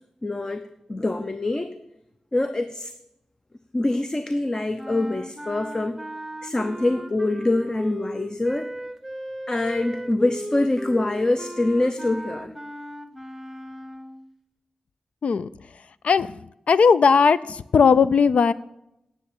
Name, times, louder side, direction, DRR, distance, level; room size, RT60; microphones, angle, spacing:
voice 1, 0.2-1.8 2.3-2.9 3.7-6.0 6.4-8.7 9.5-12.5, left 2 dB, 35° left, 0.8 m, -25 dB
sound 1, 4.8-14.3, right 1 dB, 5° right, 0.9 m, -37 dB
voice 2, 16.7-18.5, left 5 dB, 75° left, 0.4 m, -17 dB
10.0 x 6.9 x 8.5 m
cardioid pair, 45°, 2 cm